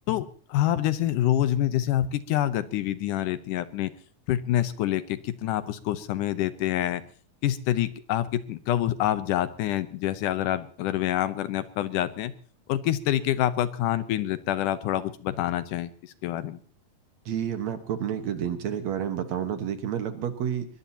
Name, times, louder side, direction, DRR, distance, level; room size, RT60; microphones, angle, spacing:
voice 1, 0.1-3.9 4.3-7.0 7.4-12.3 12.7-16.6, left 12 dB, 85° left, 13 dB, 2.4 m, -27 dB
voice 2, 17.3-20.7, right 9 dB, 65° right, 8 dB, 2.5 m, -30 dB
22.5 x 21.0 x 2.9 m, 0.42 s
omnidirectional pair, 3.6 m